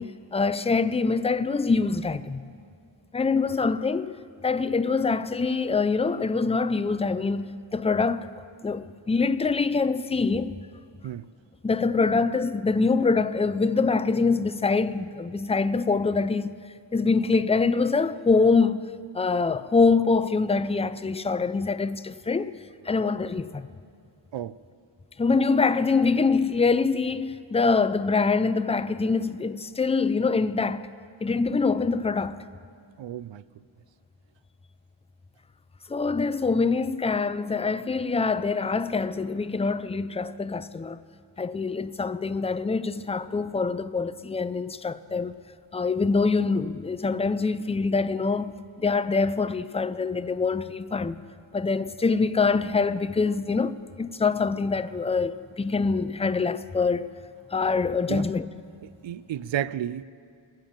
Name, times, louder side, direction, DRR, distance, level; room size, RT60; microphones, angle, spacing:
voice 1, 0.0-2.4 3.1-4.2 4.4-8.3 8.6-10.6 11.6-16.5 16.9-18.8 19.1-22.5 22.9-23.7 25.2-30.9 31.2-32.4 35.9-41.0 41.4-45.4 45.7-51.2 51.5-57.1 57.5-58.5, left 4 dB, 15° left, 0.3 m, -24 dB
voice 2, 33.0-33.4 58.1-58.3 59.0-60.0, right 11 dB, 70° right, 0.5 m, -31 dB
22.0 x 9.0 x 7.3 m
wide cardioid pair, 95°, 48 cm